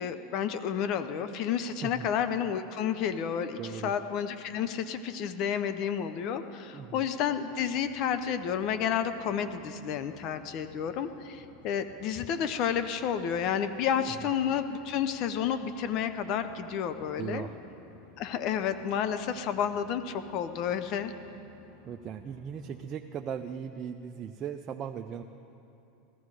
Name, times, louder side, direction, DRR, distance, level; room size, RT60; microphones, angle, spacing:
voice 1, 0.0-17.5 18.2-21.1, left 8 dB, 55° left, 10 dB, 0.7 m, -31 dB
voice 2, 3.6-3.9 6.7-7.1 17.2-17.6 21.9-25.2, right 8 dB, 40° right, 5 dB, 0.5 m, -38 dB
sound 1, 7.5-22.9, left 2 dB, 90° left, 1.9 m, -56 dB
16.5 x 12.5 x 4.9 m, 2.8 s
hypercardioid pair, 100°, 0 cm